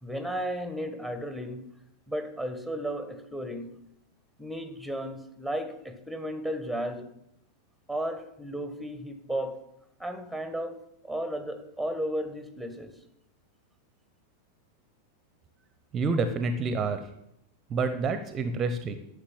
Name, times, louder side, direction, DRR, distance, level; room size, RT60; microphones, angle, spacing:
voice 1, 0.0-1.7 2.1-3.8 4.4-7.1 7.9-9.6 10.0-13.0, right 1 dB, ahead, 9 dB, 1.6 m, -34 dB
voice 2, 15.9-17.0 17.7-19.0, right 4 dB, 25° right, 10 dB, 1.0 m, -28 dB
11.5 x 6.7 x 9.1 m, 0.78 s
figure-of-eight pair, 90°, 0 cm